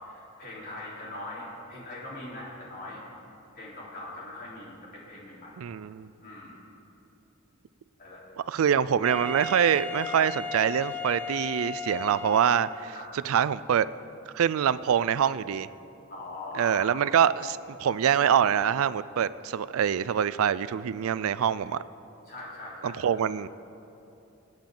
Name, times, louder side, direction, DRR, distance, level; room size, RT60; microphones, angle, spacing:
voice 1, 0.0-3.0 3.6-5.5 6.2-6.6 8.0-8.2 12.9-13.3 16.1-16.9 22.3-23.0, left 2 dB, 45° left, -6 dB, 3.8 m, -41 dB
voice 2, 5.6-6.1 8.5-12.9 13.2-13.9 14.3-15.7 16.5-21.8 22.8-23.5, right 8 dB, 70° right, 17 dB, 0.4 m, -25 dB
Wind instrument woodwind instrument, 9.0-13.0, left 4 dB, 5° left, 0.6 m, -36 dB
26.0 x 8.8 x 3.9 m, 2.9 s
head